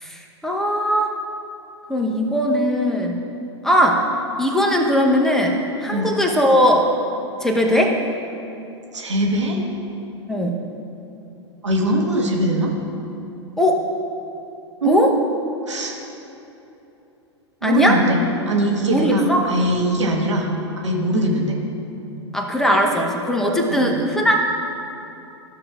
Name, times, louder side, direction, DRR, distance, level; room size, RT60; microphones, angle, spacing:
voice 1, 0.0-1.1 1.9-3.2 3.6-4.0 4.4-5.5 5.8-6.8 7.4-8.0 10.3-10.6 13.6-13.8 14.8-15.1 17.6-18.0 18.9-19.4 20.1-20.2 21.1-21.3 22.3-24.4, equal, 5° left, 1 dB, 0.9 m, -19 dB
voice 2, 8.9-9.6 11.6-12.7 14.8-15.0 15.7-15.9 17.6-18.2 18.5-20.5 20.8-21.6 23.7-24.0, right 1 dB, 80° right, 0 dB, 1.3 m, -21 dB
13.0 x 6.2 x 2.4 m, 2.9 s
figure-of-eight pair, 100°, 15 cm